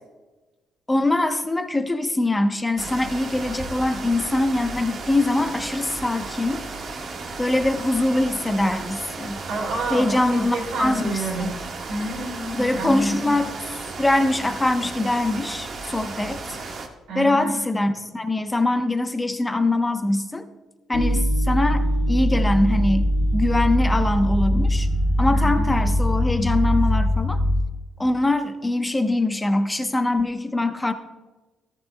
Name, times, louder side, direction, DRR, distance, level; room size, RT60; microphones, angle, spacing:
voice 1, 0.9-6.6 7.4-9.4 9.9-11.6 12.5-16.4 17.1-20.4 20.9-24.9 25.2-27.4 28.0-30.9, left 2 dB, 15° left, 7 dB, 1.0 m, -23 dB
sound 1, 2.8-16.9, right 3 dB, 60° right, 1.7 m, -34 dB
voice 2, 9.5-11.5 11.9-13.3 17.1-17.6 25.3-25.7, right 2 dB, 85° right, -1 dB, 4.4 m, -29 dB
sound 2, 20.9-27.6, equal, 60° left, 3.1 m, -21 dB
14.5 x 13.0 x 2.3 m, 1.2 s
cardioid pair, 90°, 0 cm